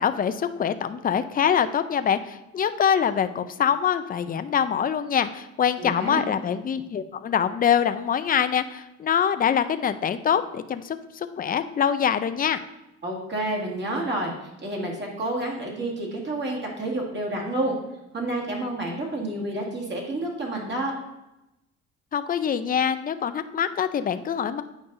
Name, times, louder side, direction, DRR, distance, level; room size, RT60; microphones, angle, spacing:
voice 1, 0.0-12.6 22.1-24.6, left 8 dB, 30° left, 11 dB, 0.4 m, -24 dB
voice 2, 5.8-6.2 13.0-17.8 18.1-20.9, right 1 dB, 35° right, -2 dB, 2.0 m, -29 dB
8.5 x 5.2 x 2.6 m, 0.94 s
cardioid pair, 90°, 30 cm